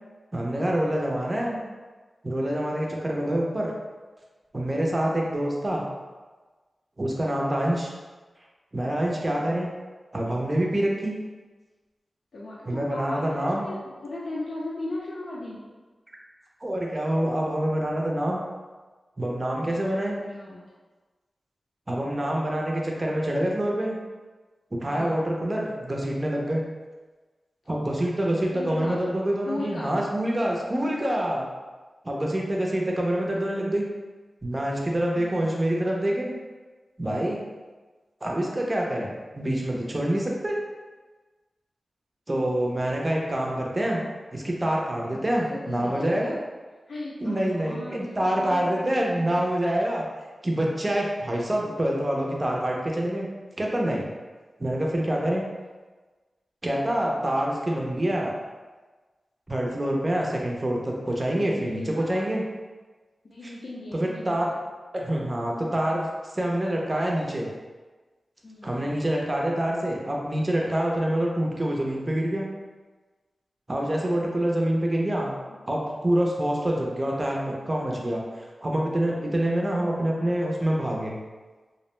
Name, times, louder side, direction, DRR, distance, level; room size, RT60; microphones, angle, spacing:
voice 1, 0.3-1.6 2.2-3.7 4.5-5.8 7.0-7.9 8.7-9.7 10.1-11.1 12.7-13.7 16.6-18.4 19.2-20.2 21.9-24.0 24.7-26.6 27.7-31.5 32.0-33.9 34.4-36.3 37.0-37.4 38.2-40.6 42.3-44.0 44.3-46.3 47.2-50.1 50.4-53.3 53.6-54.1 54.6-55.4 56.6-58.3 59.5-62.4 63.9-64.5 64.9-66.1 66.3-67.5 68.6-72.5 73.7-75.4 75.7-78.2 78.6-81.2, right 1 dB, 30° right, -2 dB, 0.5 m, -26 dB
voice 2, 12.3-15.6 19.6-20.7 24.9-25.1 28.5-29.0 29.4-30.0 35.1-35.5 45.0-46.4 46.9-48.1 48.3-49.4 61.0-62.3 63.2-64.6 68.4-69.0 75.5-75.6, left 2 dB, 70° left, -6 dB, 0.4 m, -37 dB
2.5 x 2.0 x 3.1 m, 1.3 s
wide cardioid pair, 95°, 0 cm